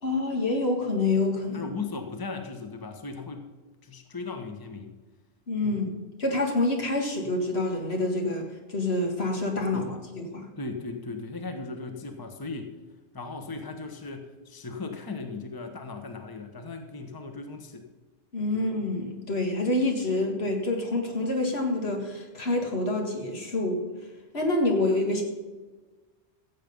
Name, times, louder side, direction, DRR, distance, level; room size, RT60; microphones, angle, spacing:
voice 1, 0.0-1.7 5.5-5.9 6.2-10.5 18.3-23.8 24.3-25.2, left 2 dB, 75° left, 1 dB, 2.3 m, -27 dB
voice 2, 1.5-3.5 3.8-4.9 5.6-5.9 9.7-10.0 10.6-12.7 13.1-17.9 18.5-18.7, left 3 dB, 20° left, 5 dB, 1.1 m, -37 dB
15.0 x 7.5 x 5.3 m, 1.3 s
omnidirectional pair, 1.1 m